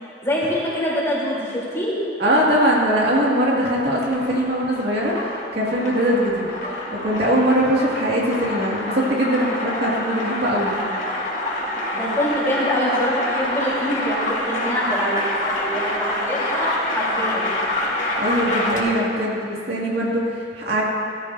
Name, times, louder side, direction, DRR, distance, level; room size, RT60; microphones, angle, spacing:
voice 1, 0.2-1.9 11.9-16.7 16.9-17.5, equal, 15° left, -7 dB, 3.6 m, -24 dB
voice 2, 2.2-5.2 5.5-6.4 6.9-10.8 18.2-20.9, equal, 65° right, -5 dB, 2.3 m, -21 dB
sound 1, 2.4-19.1, left 1 dB, 45° left, 1.8 m, -27 dB
18.5 x 14.0 x 2.7 m, 2.6 s
head